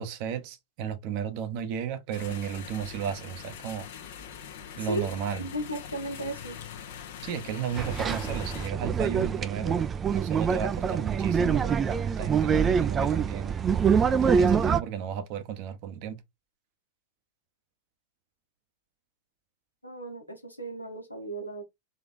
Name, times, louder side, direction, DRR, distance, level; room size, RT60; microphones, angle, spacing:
voice 1, 0.0-3.9 4.8-5.4 7.2-13.5 14.2-16.2, right 8 dB, 45° right, 0.8 m, -34 dB
sound 1, 2.1-8.7, left 8 dB, 55° left, 0.8 m, -42 dB
voice 2, 4.8-6.6 19.8-21.6, right 1 dB, 85° left, 1.3 m, -35 dB
sound 2, 7.8-14.8, right 6 dB, 20° right, 0.4 m, -25 dB
3.7 x 3.4 x 3.7 m
figure-of-eight pair, 90°, 0 cm